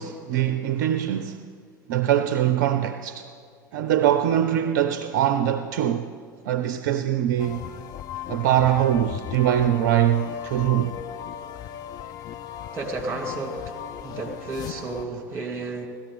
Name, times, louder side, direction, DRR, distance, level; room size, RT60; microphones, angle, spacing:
voice 1, 0.0-1.4 1.9-3.3 3.7-6.1 6.4-7.6 8.3-10.9, right 11 dB, 55° right, 0.5 m, -22 dB
sound 1, 7.4-15.1, left 9 dB, 40° left, 0.6 m, -36 dB
voice 2, 12.7-15.9, right 3 dB, 20° right, 2.4 m, -32 dB
17.0 x 13.0 x 4.1 m
figure-of-eight pair, 80°, 10 cm